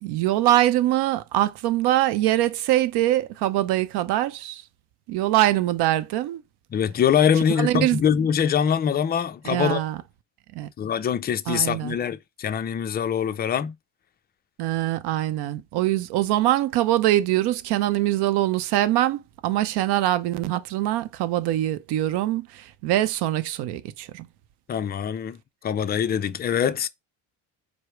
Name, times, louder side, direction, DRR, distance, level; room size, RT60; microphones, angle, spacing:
voice 1, 0.0-4.6 5.1-6.4 7.6-8.0 9.5-10.0 10.6-10.7 11.5-11.9 14.6-22.5 22.8-24.3, right 14 dB, 65° right, 0.6 m, -23 dB
voice 2, 6.7-9.8 10.8-13.8 24.7-25.4 25.6-26.9, left 8 dB, 25° left, 0.3 m, -23 dB
4.7 x 2.1 x 4.4 m
supercardioid pair, 90°, 43 cm